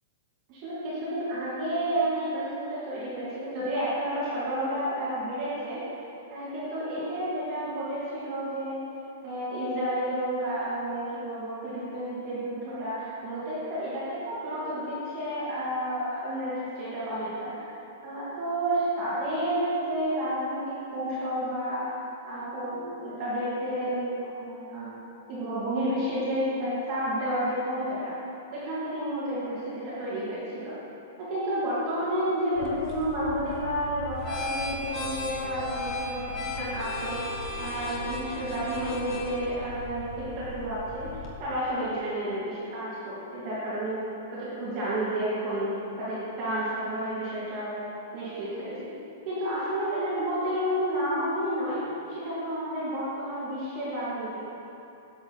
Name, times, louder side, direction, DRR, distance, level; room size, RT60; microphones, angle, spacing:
voice 1, 0.5-5.8 6.3-8.9 9.2-17.7 18.0-22.0 22.3-24.9 25.3-28.1 28.5-30.7 31.2-41.1 41.4-44.0 44.3-47.9 48.1-48.9 49.3-54.6, right 1 dB, 30° right, -10 dB, 2.5 m, -31 dB
sound 1, 32.6-41.4, left 2 dB, 25° left, 1.5 m, -36 dB
13.0 x 8.9 x 4.3 m, 2.7 s
supercardioid pair, 175°, 0 cm